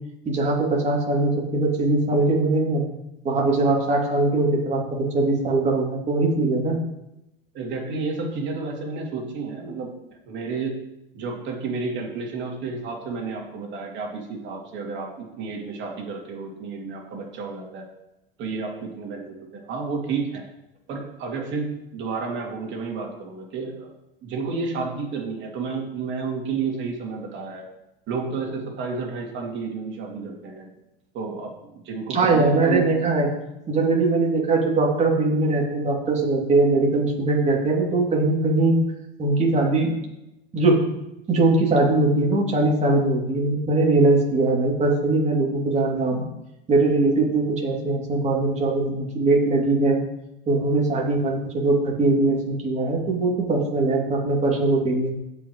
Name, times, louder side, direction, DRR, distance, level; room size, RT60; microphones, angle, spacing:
voice 1, 0.2-2.8 3.2-4.8 5.1-6.8 32.1-33.3 33.7-38.8 39.2-40.0 40.5-40.8 41.3-46.2 46.7-50.0 50.5-55.1, right 2 dB, 25° right, -1 dB, 2.7 m, -21 dB
voice 2, 7.5-9.9 10.3-10.7 11.1-17.9 18.4-20.4 20.9-23.9 24.2-27.7 28.1-30.7 31.1-32.9, right 4 dB, 40° right, 0 dB, 2.8 m, -31 dB
17.0 x 5.7 x 3.1 m, 0.89 s
hypercardioid pair, 100°, 29 cm